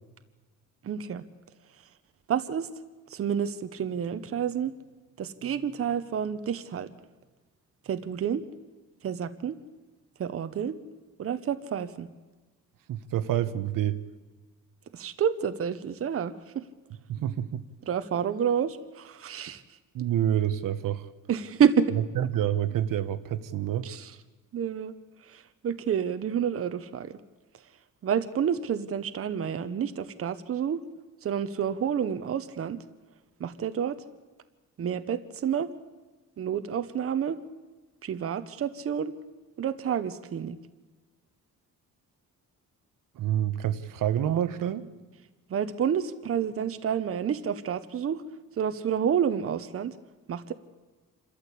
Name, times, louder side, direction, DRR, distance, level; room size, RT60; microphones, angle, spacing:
voice 1, 0.8-1.2 2.3-2.7 3.1-4.7 5.2-6.9 7.8-8.4 9.0-9.6 10.2-10.8 11.2-12.1 14.9-16.6 17.9-19.6 21.3-21.9 23.8-24.1 24.5-24.9 25.2-27.1 28.0-30.8 31.2-32.8 33.4-34.0 34.8-35.7 36.4-37.4 38.0-39.1 39.6-40.6 45.5-48.2 48.6-49.9 50.3-50.5, right 8 dB, 45° right, 1.0 m, -29 dB
voice 2, 12.9-14.0 17.1-17.6 19.9-21.1 22.2-23.9 43.2-44.8, right 11 dB, 85° right, 1.1 m, -28 dB
27.0 x 13.5 x 8.4 m
wide cardioid pair, 165°, 32 cm